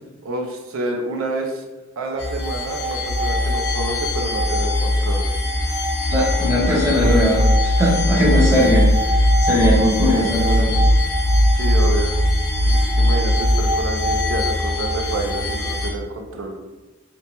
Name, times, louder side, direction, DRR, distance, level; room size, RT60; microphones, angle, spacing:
voice 1, 0.2-1.7 2.0-5.2 11.5-12.2 12.6-16.6, right 2 dB, 90° right, 2 dB, 0.4 m, -28 dB
sound 1, 2.2-15.9, left 1 dB, 90° left, 0.6 m, -19 dB
voice 2, 6.1-8.9 9.4-10.7, left 1 dB, 15° right, -4 dB, 0.6 m, -19 dB
2.9 x 2.1 x 2.9 m, 1.1 s
head